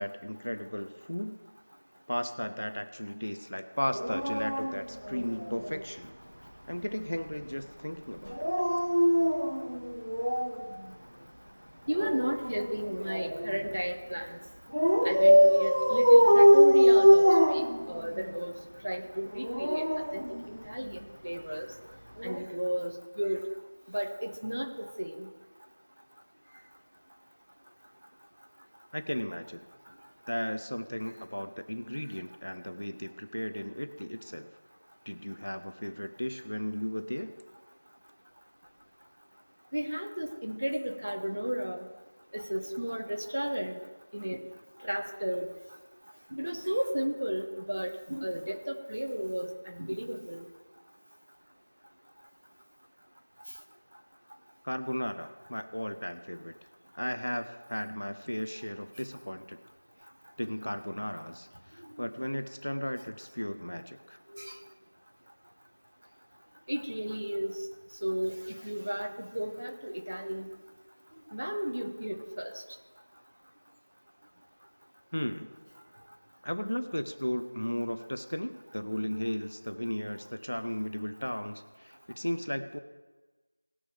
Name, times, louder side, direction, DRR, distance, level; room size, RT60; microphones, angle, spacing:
voice 1, 0.0-1.4 2.1-6.1 6.7-8.5 28.9-29.7 30.3-34.5 35.1-37.3 54.6-56.6 56.9-59.6 60.4-64.2 75.1-75.5 76.4-82.8, equal, 30° left, 9 dB, 0.5 m, -35 dB
Dog, 3.9-5.8 8.3-10.6 11.9-13.6 14.7-18.3 19.3-20.9 22.2-22.4, equal, 65° right, 1.9 m, -23 dB
voice 2, 11.9-14.4 15.0-18.5 18.8-19.8 20.1-20.2 20.7-21.7 22.2-23.4 23.9-25.3 39.7-41.8 42.3-43.8 44.1-44.4 44.8-45.5 46.3-50.4 64.3-64.6 66.7-67.6 68.0-70.5 71.3-72.5, equal, 20° right, 3 dB, 0.6 m, -33 dB
18.5 x 6.3 x 3.4 m, 1.3 s
figure-of-eight pair, 180°, 0 cm